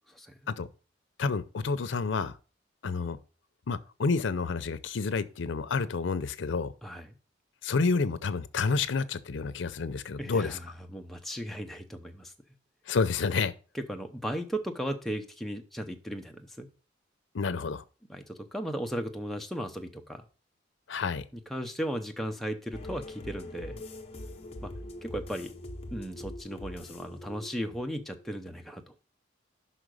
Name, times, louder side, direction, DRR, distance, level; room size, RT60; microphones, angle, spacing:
voice 1, 1.2-2.3 2.8-3.2 3.7-6.7 7.6-10.6 12.9-13.5 17.3-17.8 20.9-21.2, left 4 dB, 85° left, 0.6 m, -29 dB
voice 2, 6.8-7.1 10.2-10.6 10.9-12.3 13.7-16.7 18.1-20.2 21.3-23.8 24.6-24.7 25.0-25.5 25.9-28.8, equal, ahead, 0.7 m, -36 dB
sound 1, 22.7-28.4, left 1 dB, 30° left, 0.9 m, -43 dB
5.6 x 5.0 x 6.3 m
head